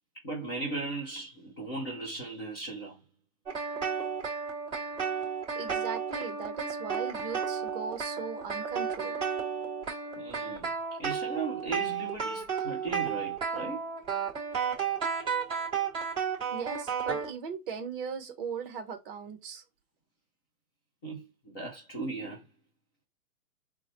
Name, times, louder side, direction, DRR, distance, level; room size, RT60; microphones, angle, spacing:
voice 1, 0.2-3.0 10.2-10.7 11.0-13.8 21.0-22.4, right 3 dB, 15° left, 0.5 m, -37 dB
sound 1, 3.5-17.3, right 6 dB, 10° right, 2.5 m, -33 dB
voice 2, 5.6-9.2 16.3-19.6, right 6 dB, 35° right, 0.9 m, -38 dB
3.9 x 2.2 x 4.1 m
hypercardioid pair, 150°, 45 cm